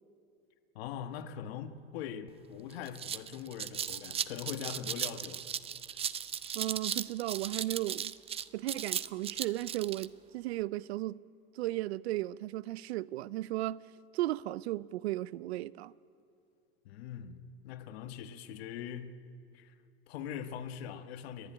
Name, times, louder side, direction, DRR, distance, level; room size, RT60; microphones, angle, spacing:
voice 1, 0.7-5.4 16.8-19.2 19.5-19.7 20.1-21.5, left 8 dB, 75° left, 1.4 m, -42 dB
sound 1, 2.3-2.4 2.7-10.1, right 8 dB, 20° right, 0.4 m, -37 dB
voice 2, 6.5-8.1 8.5-11.2 11.6-13.8 14.1-15.9, right 16 dB, 90° right, 0.6 m, -35 dB
29.0 x 11.5 x 10.0 m
supercardioid pair, 120°, 31 cm